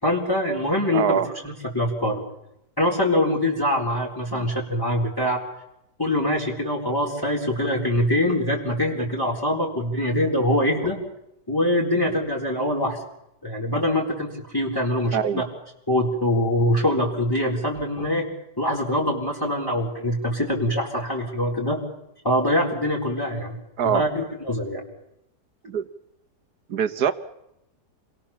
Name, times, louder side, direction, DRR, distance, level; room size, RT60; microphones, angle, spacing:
voice 1, 0.0-1.2 1.4-2.2 2.8-5.4 6.0-11.0 11.5-13.0 13.4-15.2 15.9-18.3 18.6-21.8 22.2-23.6 23.8-24.8, left 1 dB, 15° left, -3 dB, 4.2 m, -23 dB
voice 2, 0.9-1.3 4.3-4.5 15.1-15.5 23.8-24.1 25.6-25.9 26.7-27.1, right 8 dB, 70° right, 9 dB, 1.8 m, -23 dB
29.0 x 22.0 x 7.3 m, 0.84 s
omnidirectional pair, 1.8 m